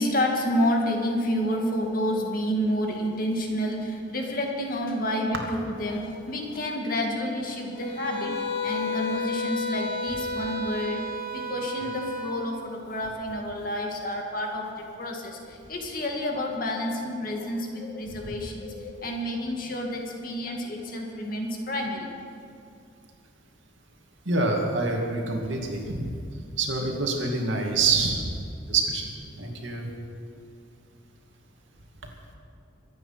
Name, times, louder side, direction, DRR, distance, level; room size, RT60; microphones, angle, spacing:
voice 1, 0.0-8.4 8.6-22.1, equal, 45° left, 1 dB, 2.2 m, -29 dB
sound 1, 7.7-12.3, left 3 dB, 70° left, 4.6 m, -32 dB
voice 2, 24.3-26.1 26.6-28.3 28.7-29.0 29.4-29.9, right 3 dB, 75° right, 0 dB, 2.5 m, -26 dB
23.5 x 9.3 x 5.9 m, 2.4 s
head